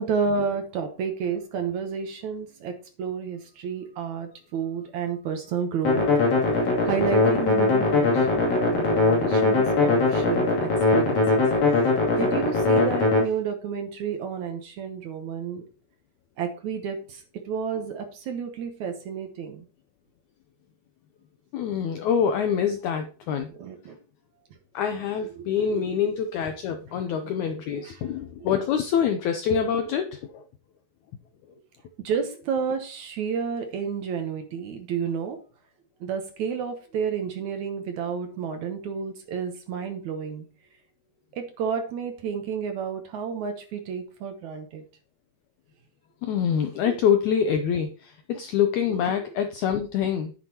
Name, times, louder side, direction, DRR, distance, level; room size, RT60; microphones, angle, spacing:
voice 1, 0.0-6.0 6.8-11.2 12.2-15.6 16.4-19.6 23.6-24.0 25.4-25.5 25.7-25.9 27.8-28.0 32.0-35.4 36.0-40.5 41.3-44.8 46.8-47.0 49.0-49.2, right 6 dB, 65° right, 6 dB, 2.1 m, -31 dB
sound 1, 5.8-13.2, left 3 dB, 55° left, 4.0 m, -21 dB
voice 2, 21.5-23.5 24.7-30.4 46.2-50.3, left 8 dB, 80° left, 7 dB, 1.7 m, -25 dB
10.0 x 9.2 x 2.9 m, 0.36 s
omnidirectional pair, 4.2 m